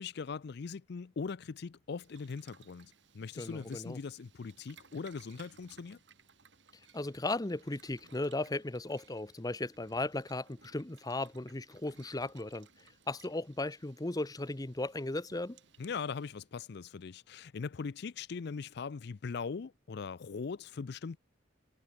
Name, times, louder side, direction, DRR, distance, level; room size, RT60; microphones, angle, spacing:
voice 1, 0.0-6.0 15.8-21.2, left 5 dB, 60° left, 0.4 m, -40 dB
Boiling, 1.9-16.5, right 6 dB, 65° right, 6.4 m, -62 dB
voice 2, 3.4-4.0 6.9-12.7 13.1-15.6, left 2 dB, 20° left, 0.8 m, -36 dB
head